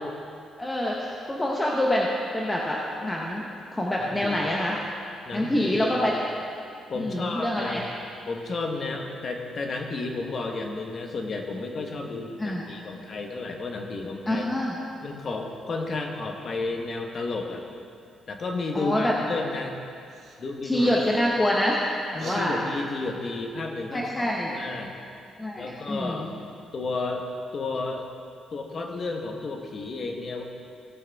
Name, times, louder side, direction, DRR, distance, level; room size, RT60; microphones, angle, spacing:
voice 1, 0.6-2.1 2.3-3.4 3.7-4.8 5.3-6.1 6.9-7.8 12.4-12.6 14.3-14.8 18.7-19.1 20.6-21.8 22.1-22.6 23.9-24.5 25.4-26.3, left 1 dB, 10° left, -3 dB, 0.9 m, -26 dB
voice 2, 4.0-4.4 5.3-6.0 6.9-7.9 8.3-14.5 15.0-17.6 18.3-19.7 20.4-21.3 22.2-24.9 25.6-26.3 26.7-27.2 27.5-28.0 28.5-30.4, left 3 dB, 40° left, 2 dB, 1.1 m, -32 dB
sound 1, 20.1-20.4 20.7-21.3 22.2-22.4, right 4 dB, 60° right, 1.1 m, -39 dB
17.5 x 6.4 x 3.5 m, 2.5 s
cardioid pair, 145°, 0 cm